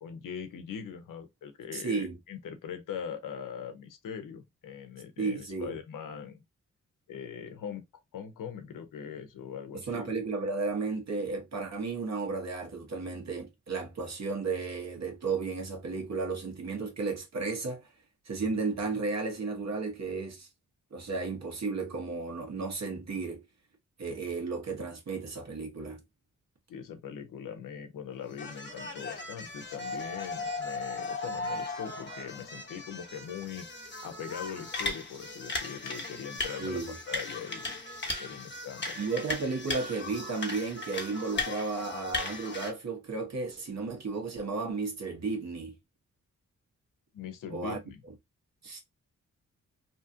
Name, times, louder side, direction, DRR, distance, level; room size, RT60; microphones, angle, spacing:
voice 1, 0.0-6.4 7.1-7.8 8.1-10.1 26.7-33.7 34.0-37.7 38.1-39.0 47.1-48.0, left 7 dB, 85° left, 0.7 m, -41 dB
voice 2, 1.7-2.2 5.2-5.8 9.9-17.8 18.3-20.5 20.9-23.4 24.0-26.0 36.6-37.0 39.0-45.7 47.5-47.8 48.6-48.8, right 4 dB, 55° right, 1.2 m, -33 dB
sound 1, 28.3-42.7, left 3 dB, 35° left, 1.0 m, -37 dB
2.9 x 2.4 x 2.7 m
cardioid pair, 55°, 31 cm